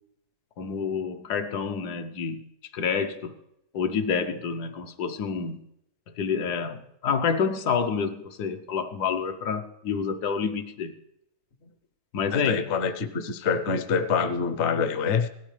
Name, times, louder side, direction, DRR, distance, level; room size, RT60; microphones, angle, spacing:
voice 1, 0.6-2.4 2.7-3.3 3.7-5.6 6.2-10.9 12.1-12.7, left 6 dB, 75° left, 6 dB, 1.4 m, -28 dB
voice 2, 12.3-15.3, left 6 dB, 55° left, 10 dB, 0.9 m, -26 dB
17.0 x 12.5 x 3.2 m, 0.80 s
omnidirectional pair, 1.8 m